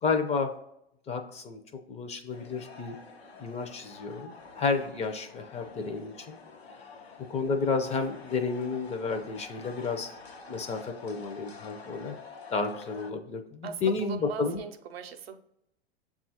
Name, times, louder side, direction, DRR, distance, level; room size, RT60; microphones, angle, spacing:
voice 1, 0.0-0.5 1.1-1.6 1.9-3.0 3.4-6.4 7.3-10.1 10.5-12.1 12.5-14.6, left 4 dB, 20° left, 6 dB, 0.5 m, -31 dB
sound 1, 2.3-13.1, left 4 dB, 85° left, 0.8 m, -48 dB
voice 2, 13.6-15.4, right 7 dB, 75° right, 7 dB, 0.6 m, -39 dB
7.1 x 2.4 x 2.7 m, 0.78 s
hypercardioid pair, 95°, 30 cm